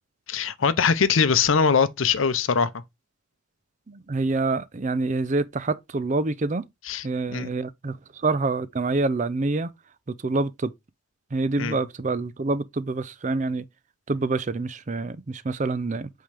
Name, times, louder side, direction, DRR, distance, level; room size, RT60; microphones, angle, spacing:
voice 1, 0.3-2.8 6.9-7.0 7.3-7.5 11.6-11.8, left 6 dB, 75° left, 0.6 m, -22 dB
voice 2, 3.9-6.6 7.0-9.7 10.1-10.7 11.3-13.7 14.1-16.1, right 3 dB, 35° right, 0.5 m, -26 dB
8.5 x 3.7 x 3.4 m
head